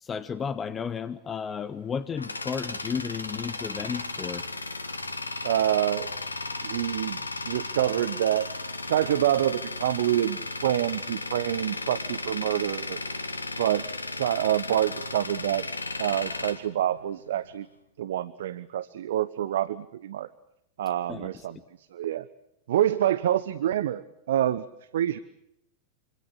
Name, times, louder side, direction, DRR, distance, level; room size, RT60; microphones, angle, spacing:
voice 1, 0.0-4.4 21.1-21.3, left 6 dB, 20° left, 14 dB, 1.2 m, -33 dB
Tools, 1.7-17.5, left 2 dB, 80° left, 1.9 m, -35 dB
voice 2, 5.4-6.1 6.6-8.5 8.8-13.0 13.6-15.6 16.0-17.7 18.0-20.3 20.8-21.6 21.9-22.2 22.7-24.7 24.9-25.2, right 11 dB, 60° right, 16 dB, 0.9 m, -27 dB
26.5 x 26.0 x 6.3 m, 0.80 s
figure-of-eight pair, 90°, 0 cm